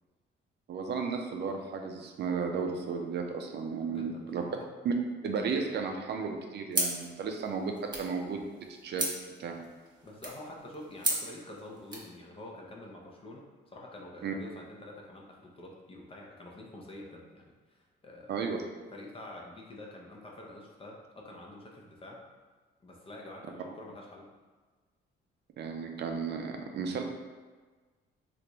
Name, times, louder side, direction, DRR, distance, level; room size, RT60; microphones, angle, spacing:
voice 1, 0.7-4.4 4.8-4.9 5.2-8.4 8.8-9.1 9.4-9.6 14.2-14.3 18.3-18.6 25.6-27.0, right 5 dB, 60° right, 3 dB, 0.5 m, -34 dB
voice 2, 3.8-4.7 10.0-18.5 18.9-22.2 22.8-24.3, left 1 dB, 30° left, -1 dB, 0.6 m, -47 dB
sound 1, 6.7-12.1, right 2 dB, 20° right, 0.9 m, -36 dB
3.2 x 2.5 x 2.9 m, 1.4 s
cardioid pair, 90°, 20 cm